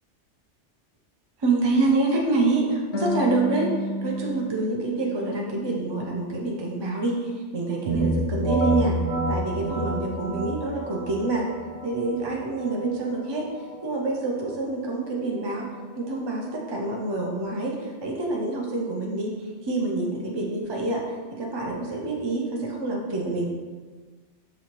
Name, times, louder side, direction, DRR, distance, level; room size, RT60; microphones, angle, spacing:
voice 1, 1.4-3.7 4.0-9.0 9.3-11.5 11.8-13.5 13.8-15.7 16.0-19.3 19.6-23.5, right 2 dB, 35° right, -2 dB, 0.4 m, -27 dB
Harp, 2.9-6.3 6.7-7.7, equal, 80° left, 0.9 m, -34 dB
sound 1, 7.9-17.4, right 1 dB, 65° right, 1.0 m, -30 dB
6.3 x 2.8 x 2.9 m, 1.4 s
omnidirectional pair, 1.2 m